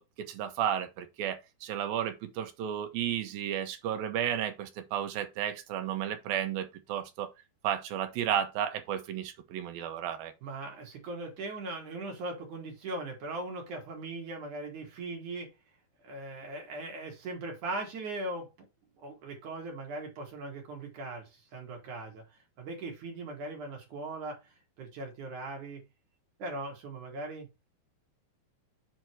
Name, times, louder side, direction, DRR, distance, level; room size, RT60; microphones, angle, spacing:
voice 1, 0.0-7.3 7.6-10.3, right 10 dB, 75° right, 2.7 m, -33 dB
voice 2, 10.4-15.5 16.0-18.7 19.0-25.8 26.4-27.5, right 2 dB, 55° right, 3.1 m, -39 dB
7.9 x 3.9 x 4.5 m
omnidirectional pair, 4.4 m